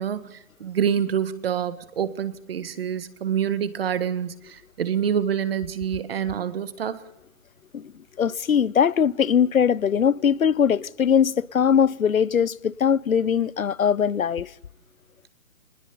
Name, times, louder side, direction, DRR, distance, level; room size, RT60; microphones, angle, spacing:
voice 1, 0.0-7.0, right 8 dB, 45° right, 1.7 m, -27 dB
voice 2, 8.2-14.5, left 7 dB, 90° left, 0.8 m, -21 dB
24.0 x 20.0 x 7.1 m
hypercardioid pair, 155°, 40 cm